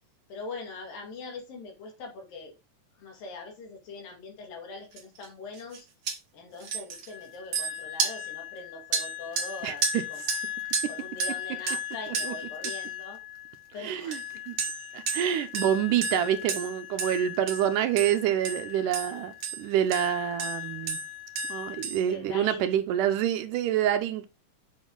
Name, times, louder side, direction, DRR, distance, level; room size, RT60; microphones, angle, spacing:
voice 1, 0.3-2.5 3.0-5.9 6.3-10.2 10.9-13.2 13.7-14.4 22.0-22.7, left 3 dB, 85° left, 3.8 m, -42 dB
sound 1, 5.0-5.3 5.5-5.8 6.1-6.2 6.6-13.7 14.1-22.0, right 1 dB, 50° right, 1.8 m, -33 dB
voice 2, 9.6-10.0 12.2-12.3 13.8-14.2 14.5-14.6 14.9-21.0 21.5-24.3, right 10 dB, 75° right, 2.2 m, -27 dB
8.3 x 5.3 x 3.9 m
omnidirectional pair, 3.9 m